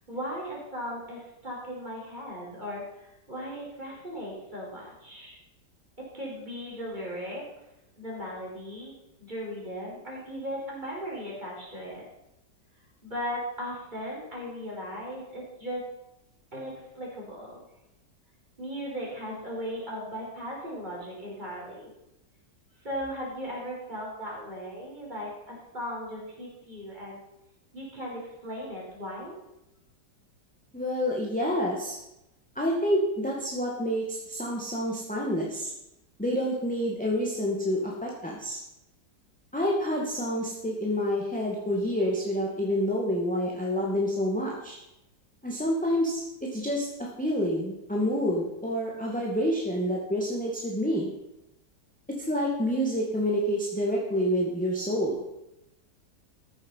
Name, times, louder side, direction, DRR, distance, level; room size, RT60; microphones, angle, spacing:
voice 1, 0.1-2.8 3.3-5.4 6.0-7.4 8.0-8.9 9.2-12.0 13.0-15.8 16.5-17.6 18.6-21.9 22.8-27.2 27.7-29.3, equal, 25° right, -4 dB, 4.5 m, -37 dB
voice 2, 30.7-32.0 32.6-35.7 36.2-38.6 39.5-44.8 45.4-51.1 52.2-55.2, equal, 5° left, -3 dB, 1.9 m, -28 dB
14.0 x 7.6 x 5.7 m, 0.88 s
omnidirectional pair, 1.9 m